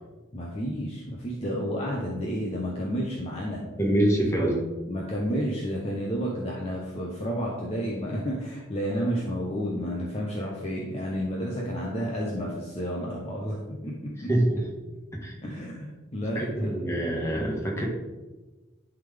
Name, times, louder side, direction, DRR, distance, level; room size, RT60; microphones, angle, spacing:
voice 1, 0.3-3.6 4.9-13.9 14.2-14.3 15.4-17.3, equal, 30° left, -3 dB, 0.8 m, -31 dB
voice 2, 3.8-4.6 14.3-14.6 15.2-15.3 16.3-17.8, right 1 dB, 15° left, -2 dB, 1.3 m, -25 dB
11.0 x 3.7 x 3.4 m, 1.2 s
head